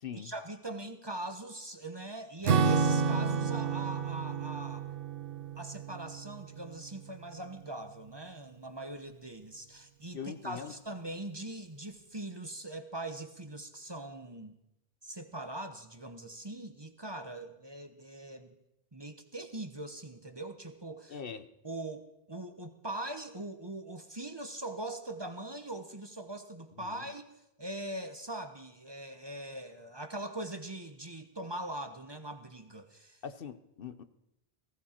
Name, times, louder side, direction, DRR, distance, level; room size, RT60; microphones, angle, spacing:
voice 1, 0.1-4.9 5.6-14.5 15.0-18.5 18.9-21.2 21.6-27.2 27.6-33.2, right 2 dB, 25° right, 8 dB, 1.1 m, -41 dB
Acoustic guitar / Strum, 2.4-7.2, right 5 dB, 65° right, 1.0 m, -31 dB
voice 2, 10.1-10.7 21.1-21.5 26.8-27.0 33.2-34.0, left 7 dB, 65° left, 11 dB, 1.0 m, -42 dB
19.0 x 16.0 x 4.5 m, 0.85 s
omnidirectional pair, 1.1 m